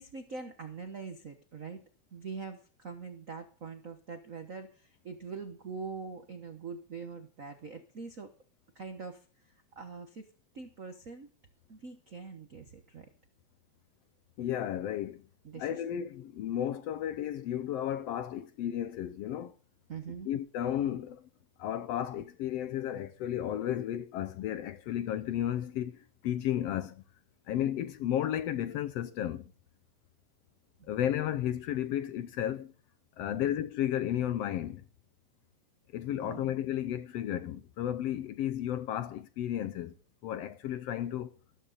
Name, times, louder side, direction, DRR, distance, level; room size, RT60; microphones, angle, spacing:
voice 1, 0.0-1.8 2.1-8.3 8.7-9.2 9.7-10.3 10.5-11.3 11.7-13.1 15.4-15.8 19.9-20.3 30.8-30.9 33.3-33.6 36.1-36.5, right 5 dB, 85° right, 0.7 m, -43 dB
voice 2, 14.4-15.2 15.5-19.5 20.2-21.3 21.6-27.0 27.5-29.5 30.9-32.7 33.2-34.8 35.9-39.9 40.2-41.3, left 11 dB, 70° left, 1.6 m, -33 dB
14.0 x 13.5 x 4.1 m
omnidirectional pair, 3.4 m